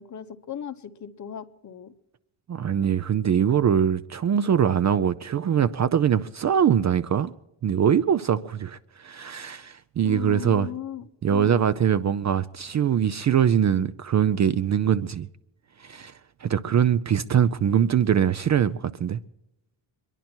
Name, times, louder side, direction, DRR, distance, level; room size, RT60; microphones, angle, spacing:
voice 1, 0.0-1.9 10.0-11.7, left 10 dB, 35° left, 1.0 m, -37 dB
voice 2, 2.5-7.3 7.6-10.7 11.2-15.3 15.8-16.1 16.4-19.2, right 8 dB, 35° right, 0.5 m, -22 dB
24.5 x 11.0 x 4.4 m
cardioid pair, 110°, 49 cm